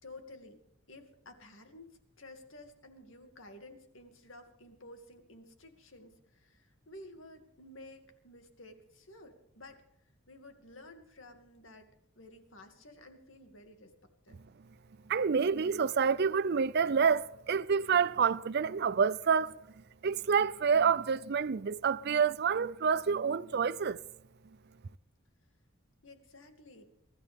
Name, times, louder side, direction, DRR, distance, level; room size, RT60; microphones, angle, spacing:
voice 1, 0.0-0.6 0.9-9.8 10.3-11.9 12.2-14.4 26.0-26.8, left 1 dB, 65° left, 2.4 m, -53 dB
voice 2, 15.1-19.6 20.0-24.0, right 6 dB, 50° right, 0.4 m, -28 dB
23.0 x 14.0 x 3.6 m
head